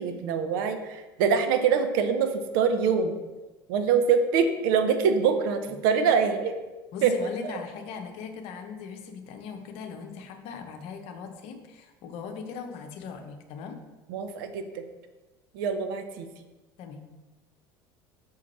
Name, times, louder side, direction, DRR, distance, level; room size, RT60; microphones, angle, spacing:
voice 1, 0.0-3.1 3.7-6.5 7.0-7.1 7.5-7.6 14.1-14.8 15.5-16.3, right 6 dB, 65° right, 7 dB, 0.8 m, -24 dB
voice 2, 6.9-13.8 16.8-17.0, left 6 dB, 55° left, 5 dB, 1.0 m, -39 dB
6.4 x 5.0 x 4.2 m, 1.2 s
figure-of-eight pair, 70°, 12 cm